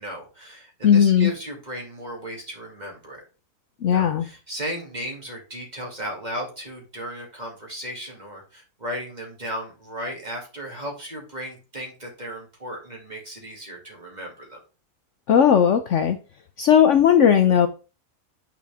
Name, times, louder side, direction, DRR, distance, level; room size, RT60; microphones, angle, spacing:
voice 1, 0.0-3.2 3.9-14.6, equal, 25° right, 0 dB, 2.4 m, -35 dB
voice 2, 0.8-1.3 3.8-4.2 15.3-16.2 16.6-17.7, left 8 dB, 60° left, 8 dB, 0.9 m, -17 dB
9.3 x 4.9 x 3.5 m, 0.34 s
omnidirectional pair, 1.6 m